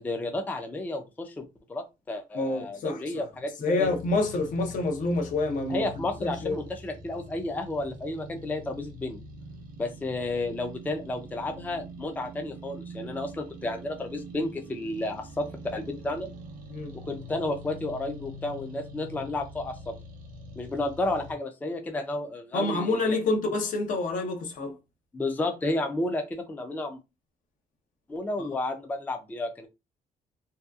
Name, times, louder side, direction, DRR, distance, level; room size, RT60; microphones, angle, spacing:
voice 1, 0.0-1.4 1.7-3.5 3.8-3.9 5.7-9.2 9.8-15.5 15.7-16.3 17.1-19.9 20.6-23.2 25.1-27.0 28.1-29.7, left 2 dB, 10° left, 0.4 m, -32 dB
voice 2, 2.3-3.2 3.6-5.8 6.2-6.6 16.7-16.9 22.5-24.8 28.4-28.5, left 2 dB, 65° left, 0.7 m, -27 dB
sound 1, 3.8-21.3, equal, 80° right, 0.5 m, -44 dB
2.7 x 2.3 x 2.3 m
cardioid pair, 125°, 14 cm